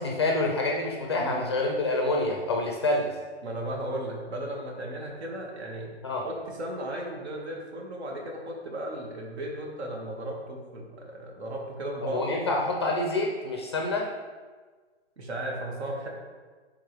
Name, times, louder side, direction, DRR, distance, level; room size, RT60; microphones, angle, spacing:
voice 1, 0.0-3.1 6.0-6.2 12.0-14.1, left 2 dB, 25° left, 0 dB, 0.5 m, -27 dB
voice 2, 3.4-12.5 15.2-16.1, right 1 dB, 70° right, 0 dB, 1.8 m, -35 dB
9.6 x 3.7 x 3.3 m, 1.4 s
hypercardioid pair, 170°, 34 cm